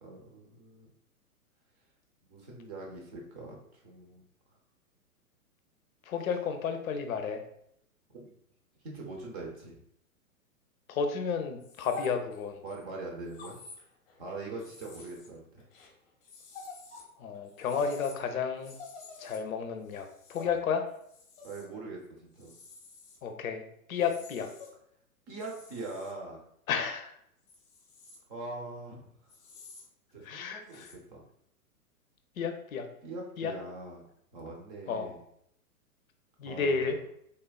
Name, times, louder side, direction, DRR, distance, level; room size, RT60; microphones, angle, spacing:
voice 1, 0.0-0.9 2.3-4.2 8.1-8.4 8.8-9.8 12.6-13.6 14.2-15.6 20.4-20.5 21.4-22.6 25.3-26.4 28.3-29.1 30.1-31.2 33.0-34.1 34.3-35.2 36.4-37.0, right 2 dB, 30° right, -1 dB, 0.6 m, -42 dB
voice 2, 6.1-7.4 10.9-12.6 17.2-18.7 19.2-20.8 23.2-23.6 23.9-24.5 26.7-27.1 30.2-30.9 32.4-32.9 33.4-33.5 34.9-35.1 36.4-37.0, left 6 dB, 65° left, 6 dB, 0.6 m, -32 dB
sound 1, 11.6-12.8 13.3-14.2 14.6-17.1 17.3-21.7 22.4-23.2 24.0-24.7 25.4-26.1 27.5-28.2 29.3-29.9 30.7-30.9, left 4 dB, 40° left, 0.7 m, -49 dB
3.4 x 2.2 x 2.3 m, 0.72 s
hypercardioid pair, 115°, 45 cm